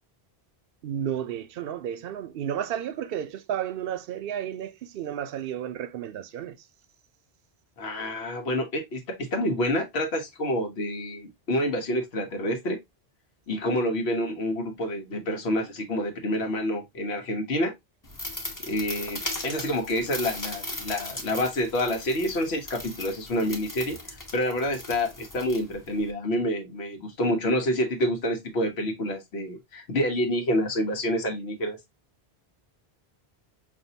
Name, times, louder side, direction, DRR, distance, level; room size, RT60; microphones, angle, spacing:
voice 1, 0.8-6.6, right 10 dB, 65° right, 0.7 m, -32 dB
voice 2, 7.8-12.8 13.5-17.7 18.6-24.0 24.3-31.8, left 1 dB, 85° left, 1.2 m, -28 dB
sound 1, 18.0-26.1, left 1 dB, 20° left, 0.9 m, -38 dB
5.2 x 2.6 x 2.7 m
omnidirectional pair, 1.1 m